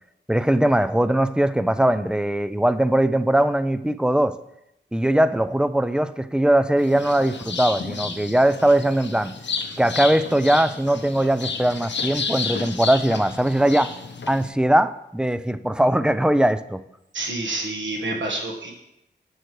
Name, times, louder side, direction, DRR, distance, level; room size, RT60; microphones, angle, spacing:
voice 1, 0.3-4.4 4.9-9.3 9.8-13.9 14.3-16.8, right 1 dB, 5° right, 14 dB, 0.3 m, -20 dB
sound 1, 6.8-14.5, left 5 dB, 70° left, 0.7 m, -32 dB
voice 2, 17.1-18.7, right 2 dB, 90° right, 1 dB, 1.5 m, -28 dB
11.0 x 6.3 x 3.2 m, 0.84 s
wide cardioid pair, 95°, 19 cm